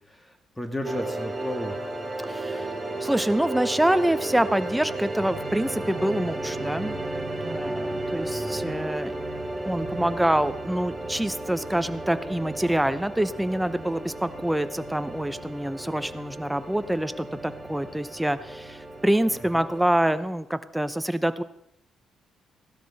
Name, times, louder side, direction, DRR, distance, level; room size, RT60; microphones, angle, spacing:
voice 1, 0.1-1.8 8.3-8.7 19.6-19.7, left 1 dB, 10° left, 5 dB, 1.8 m, -34 dB
sound 1, 0.8-19.9, right 2 dB, 20° right, 6.2 m, -34 dB
voice 2, 2.2-2.7 3.0-7.0 7.4-9.1 9.6-21.4, right 1 dB, 5° right, 12 dB, 0.8 m, -26 dB
16.0 x 12.5 x 4.2 m, 0.78 s
cardioid pair, 90°, 0 cm